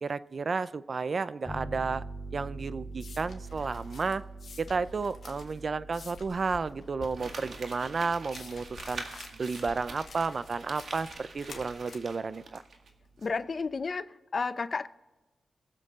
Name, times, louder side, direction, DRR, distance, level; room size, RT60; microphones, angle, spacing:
voice 1, 0.0-2.0 2.3-4.2 4.6-9.0 9.3-12.6, right 4 dB, 50° right, 0.5 m, -32 dB
sound 1, 1.4-10.7, right 2 dB, 10° right, 2.7 m, -45 dB
sound 2, 2.5-13.8, left 4 dB, 70° left, 1.6 m, -50 dB
Crumpling crinkling, 7.1-12.9 13.2-13.3, right 3 dB, 65° right, 1.9 m, -45 dB
voice 2, 13.2-14.9, left 4 dB, 45° left, 0.6 m, -32 dB
22.0 x 7.6 x 3.7 m
cardioid pair, 85°, 0 cm